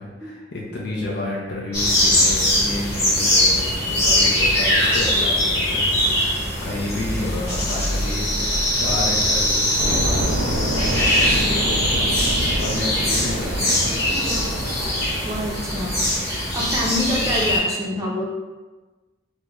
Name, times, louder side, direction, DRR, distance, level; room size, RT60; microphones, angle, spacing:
voice 1, 0.0-5.8 6.2-10.2 11.0-12.0 12.4-14.0 16.6-16.7, left 2 dB, 60° left, -4 dB, 0.5 m, -31 dB
sound 1, 1.7-17.6, left 1 dB, 35° left, 1.5 m, -21 dB
sound 2, 9.8-16.1, right 1 dB, 90° right, 0.5 m, -27 dB
voice 2, 14.1-14.5 15.2-18.2, left 1 dB, 20° right, -3 dB, 0.5 m, -27 dB
3.0 x 2.1 x 3.6 m, 1.2 s
head